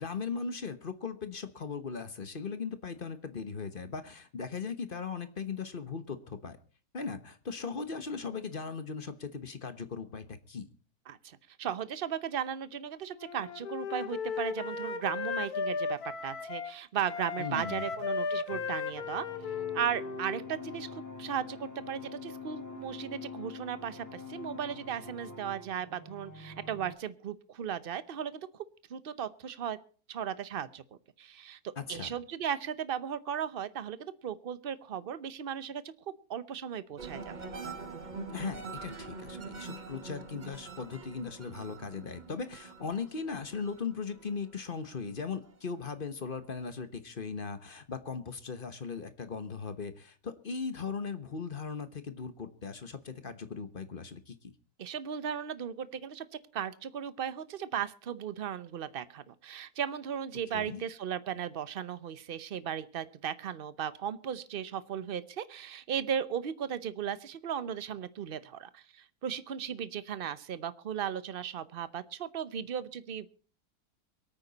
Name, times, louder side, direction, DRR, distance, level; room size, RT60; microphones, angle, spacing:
voice 1, 0.0-6.6 6.9-10.7 17.4-18.0 31.8-32.1 38.3-54.5 60.5-60.8, left 5 dB, 35° left, 11 dB, 1.1 m, -38 dB
voice 2, 11.1-19.2 19.7-29.8 30.1-30.8 31.2-37.3 54.8-56.3 56.5-73.3, right 8 dB, 45° right, 15 dB, 0.8 m, -36 dB
Wind instrument woodwind instrument, 13.2-16.7 17.1-20.8, left 5 dB, 65° left, 1.7 m, -36 dB
sound 1, 18.5-27.0, left 4 dB, 10° left, 1.2 m, -45 dB
sound 2, 37.0-45.8 46.2-46.7, right 4 dB, 30° right, 1.2 m, -45 dB
24.0 x 9.0 x 4.1 m, 0.40 s
omnidirectional pair, 1.8 m